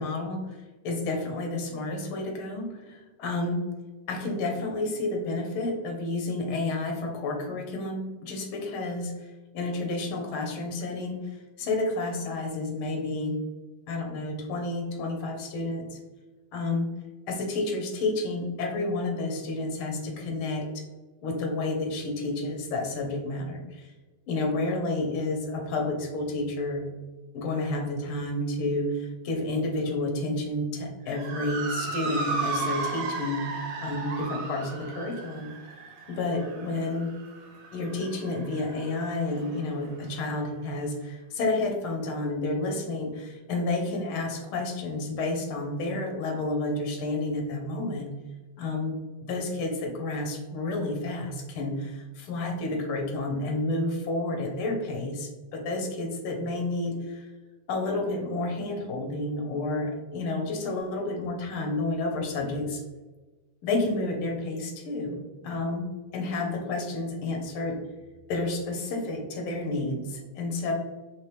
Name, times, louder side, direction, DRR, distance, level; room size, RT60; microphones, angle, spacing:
voice 1, 0.0-3.6 4.1-13.4 13.9-16.0 16.5-16.9 17.3-20.8 21.2-23.9 24.3-26.9 27.3-33.5 33.8-35.5 36.1-37.1 37.7-48.1 48.6-57.3 57.7-62.8 63.6-65.8 66.1-67.8 68.3-70.7, left 2 dB, 85° left, 2 dB, 1.7 m, -30 dB
Motor vehicle (road) / Siren, 31.1-39.7, right 3 dB, 75° right, 1.6 m, -35 dB
4.5 x 3.0 x 3.3 m, 1.2 s
omnidirectional pair, 2.3 m